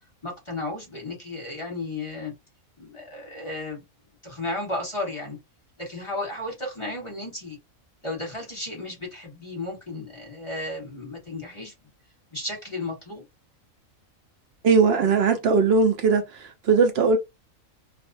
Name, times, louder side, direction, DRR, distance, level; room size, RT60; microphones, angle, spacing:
voice 1, 0.2-2.3 2.8-3.8 4.2-5.4 5.8-7.6 8.0-11.7 12.3-13.2, left 2 dB, 25° left, 1.0 m, -34 dB
voice 2, 14.6-17.2, right 4 dB, 65° right, 0.6 m, -20 dB
2.5 x 2.0 x 2.6 m
omnidirectional pair, 1.4 m